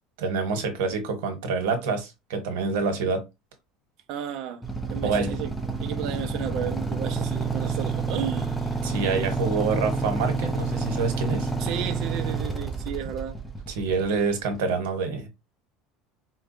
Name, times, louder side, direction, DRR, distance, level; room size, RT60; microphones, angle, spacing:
voice 1, 0.2-3.2 5.0-5.3 8.8-11.5 13.8-15.3, right 4 dB, 90° right, 1.1 m, -26 dB
voice 2, 4.1-4.6 4.9-5.5 5.8-9.0 11.6-13.4, right 9 dB, 50° right, 0.6 m, -33 dB
Motorcycle / Idling, 4.6-14.5, right 3 dB, ahead, 0.5 m, -29 dB
4.4 x 2.3 x 2.6 m
cardioid pair, 170°, 0 cm